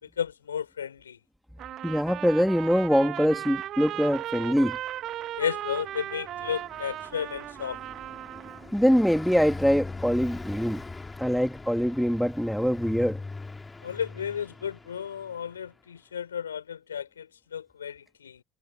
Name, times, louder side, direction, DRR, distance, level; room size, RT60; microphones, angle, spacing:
voice 1, 0.0-1.2 5.4-7.8 13.8-18.4, left 8 dB, 85° left, 4.8 m, -33 dB
Trumpet, 1.6-8.7, right 12 dB, 50° right, 3.0 m, -37 dB
voice 2, 1.8-4.8 8.7-10.8 11.2-13.2, equal, ahead, 2.6 m, -24 dB
Car passing by, 4.7-15.7, left 3 dB, 20° left, 4.3 m, -42 dB
hypercardioid pair, 65°, 0 cm